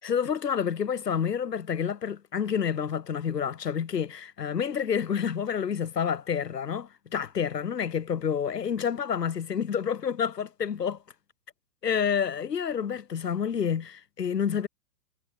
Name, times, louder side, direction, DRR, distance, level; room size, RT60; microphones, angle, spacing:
voice 1, 0.0-11.0 11.8-14.7, left 7 dB, 75° left, 4.0 m, -29 dB
hypercardioid pair, 120°, 49 cm